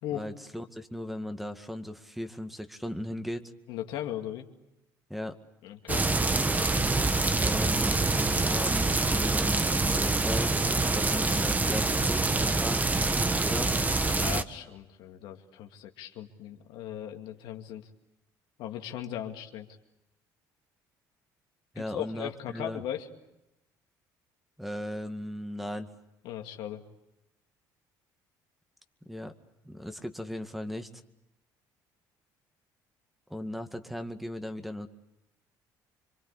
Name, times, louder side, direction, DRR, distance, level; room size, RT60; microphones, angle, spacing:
voice 1, 0.1-3.5 5.1-5.4 7.3-10.6 10.9-12.9 13.4-13.7 21.7-22.8 24.6-25.9 29.1-29.3 29.7-30.9 33.3-34.9, left 1 dB, ahead, 8 dB, 2.0 m, -37 dB
voice 2, 3.7-4.5 5.6-6.1 14.0-17.9 18.6-19.7 21.8-23.1 26.2-26.8, left 11 dB, 80° left, 4 dB, 2.4 m, -38 dB
sound 1, 5.9-14.4, right 3 dB, 20° right, 1.4 m, -26 dB
27.0 x 24.0 x 8.4 m, 0.90 s
supercardioid pair, 85°, 8 cm